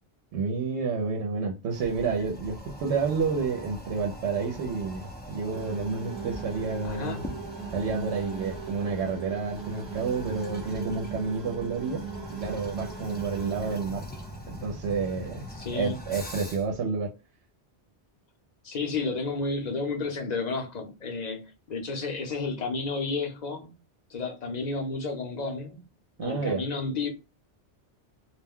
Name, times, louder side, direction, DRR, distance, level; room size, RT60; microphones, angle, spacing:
voice 1, 0.3-7.2 7.7-12.0 12.3-14.0 14.5-15.4 15.7-17.1 26.2-26.6, right 4 dB, 80° right, 0.9 m, -30 dB
Toilet flush, 1.7-16.8, equal, 15° left, 0.4 m, -41 dB
sound 1, 5.5-13.8, right 6 dB, 55° right, 1.0 m, -40 dB
voice 2, 6.8-7.3 15.5-16.0 18.6-23.7 24.1-25.8 26.2-27.1, left 3 dB, 45° left, 0.8 m, -31 dB
2.4 x 2.1 x 3.5 m
omnidirectional pair, 1.2 m